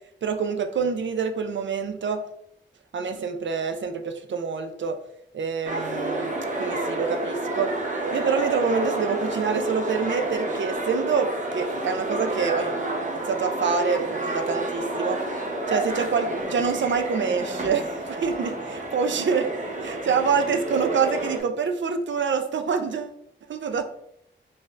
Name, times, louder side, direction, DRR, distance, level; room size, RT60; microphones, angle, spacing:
voice 1, 0.2-2.2 2.9-5.0 5.3-7.7 8.1-12.8 13.2-15.2 15.7-19.5 19.8-23.1 23.5-23.8, right 5 dB, 65° right, 7 dB, 0.5 m, -26 dB
sound 1, 5.6-21.4, right 1 dB, 40° right, 0.8 m, -29 dB
3.5 x 2.7 x 3.1 m, 0.74 s
wide cardioid pair, 75°, 20 cm